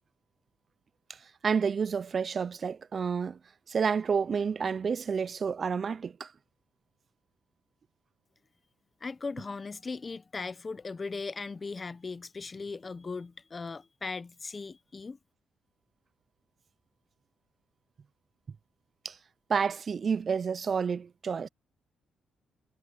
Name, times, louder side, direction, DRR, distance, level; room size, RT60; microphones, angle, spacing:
voice 1, 1.1-3.4 3.7-6.3 19.0-19.2 19.5-21.5, right 6 dB, 45° right, 0.5 m, -30 dB
voice 2, 9.0-15.2, left 4 dB, 30° left, 0.8 m, -38 dB
cardioid pair, 90°, 0 cm